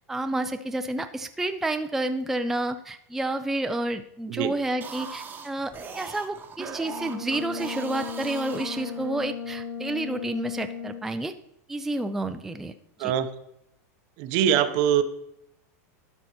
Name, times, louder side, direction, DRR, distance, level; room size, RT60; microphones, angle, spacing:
voice 1, 0.1-11.3 11.7-12.7 13.0-13.1, right 2 dB, 5° right, 7 dB, 0.3 m, -30 dB
sound 1, 4.7-9.4, right 5 dB, 20° right, 0.9 m, -40 dB
Brass instrument, 6.8-11.2, left 6 dB, 85° left, 1.7 m, -36 dB
voice 2, 14.2-15.0, right 9 dB, 55° right, 11 dB, 0.7 m, -23 dB
12.5 x 5.5 x 2.9 m, 0.80 s
supercardioid pair, 125°, 9 cm